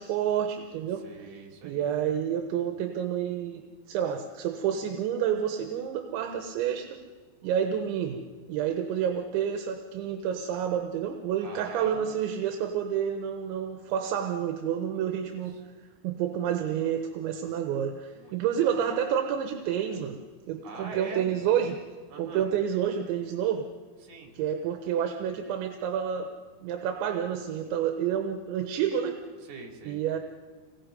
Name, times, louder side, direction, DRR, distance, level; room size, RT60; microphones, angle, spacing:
voice 1, 0.0-1.1 1.6-7.0 7.4-15.6 16.0-20.2 20.5-21.8 22.2-23.7 24.4-26.3 26.6-29.2 29.9-30.2, right 9 dB, 80° right, 5 dB, 3.3 m, -29 dB
voice 2, 0.9-1.9 11.4-12.2 14.9-15.6 18.1-18.7 20.6-21.3 22.1-22.5 24.0-24.4 29.4-30.0, right 3 dB, 60° right, 1 dB, 5.0 m, -44 dB
27.0 x 20.0 x 5.3 m, 1.5 s
omnidirectional pair, 5.2 m